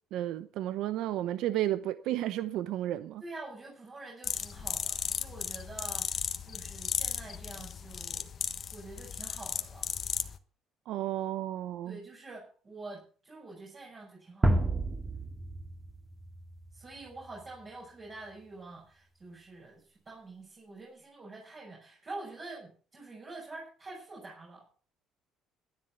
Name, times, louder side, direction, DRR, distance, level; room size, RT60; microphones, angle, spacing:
voice 1, 0.1-3.2 10.9-12.0, right 13 dB, 75° right, 0.8 m, -32 dB
voice 2, 3.2-8.3 8.7-9.9 11.8-14.7 16.7-24.6, right 2 dB, 35° right, 6.3 m, -46 dB
sound 1, 4.2-10.4, left 7 dB, 45° left, 1.3 m, -35 dB
sound 2, 14.4-17.4, right 1 dB, 20° right, 2.2 m, -31 dB
13.5 x 10.5 x 5.7 m
cardioid pair, 100°, 0 cm